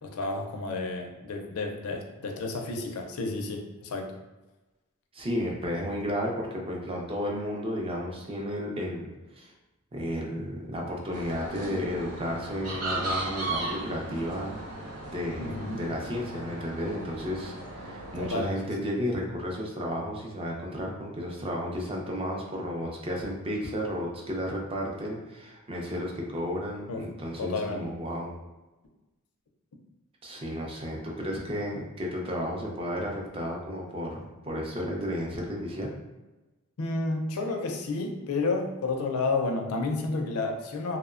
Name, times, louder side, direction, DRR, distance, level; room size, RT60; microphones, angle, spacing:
voice 1, 0.0-4.1 15.4-15.8 18.2-18.8 26.9-27.1 27.4-27.9 36.8-41.0, left 3 dB, 75° left, 3 dB, 0.4 m, -31 dB
voice 2, 5.1-9.1 9.4-9.5 9.9-14.6 15.1-28.3 30.2-35.9, equal, 25° right, -1 dB, 0.4 m, -33 dB
sound 1, 11.1-18.3, right 2 dB, 85° right, 0.6 m, -36 dB
2.8 x 2.1 x 2.4 m, 1.1 s
head